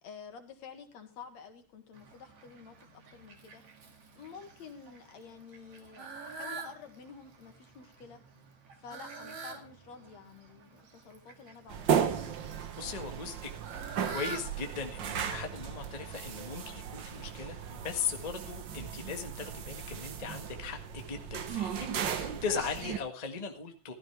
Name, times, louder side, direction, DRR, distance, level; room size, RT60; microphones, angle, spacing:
voice 1, 0.0-2.7 3.1-3.6 4.1-8.2 8.8-11.9, left 6 dB, 60° left, 6 dB, 2.9 m, -49 dB
Fowl, 1.9-17.3, right 5 dB, 50° right, 2.9 m, -48 dB
sound 1, 11.7-23.0, right 8 dB, 70° right, 1.0 m, -35 dB
voice 2, 12.7-13.5 14.1-23.9, left 5 dB, 30° left, 4 dB, 0.7 m, -38 dB
16.0 x 13.0 x 3.4 m, 0.29 s
omnidirectional pair, 3.7 m